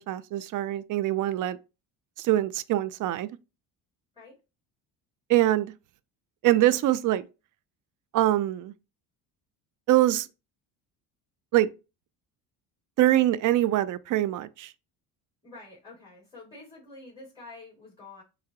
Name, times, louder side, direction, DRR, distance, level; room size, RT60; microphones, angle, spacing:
voice 1, 0.1-1.6 2.2-3.3 5.3-5.7 6.4-7.2 8.1-8.7 9.9-10.3 11.5-11.7 13.0-14.7, right 14 dB, 50° right, 0.4 m, -23 dB
voice 2, 15.4-18.2, left 3 dB, 10° left, 2.4 m, -47 dB
5.8 x 2.2 x 2.8 m
cardioid pair, 100°, 42 cm